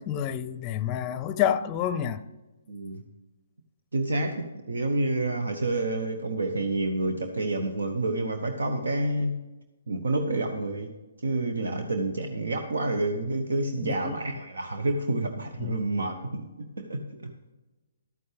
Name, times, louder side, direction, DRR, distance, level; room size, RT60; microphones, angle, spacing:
voice 1, 0.0-2.2 13.8-14.2 15.6-15.7, left 10 dB, 25° left, 0.6 m, -28 dB
voice 2, 2.7-3.0 3.9-9.3 9.9-10.9 11.2-17.3, right 2 dB, 70° right, 1.0 m, -29 dB
12.5 x 9.5 x 3.4 m
figure-of-eight pair, 135°, 0 cm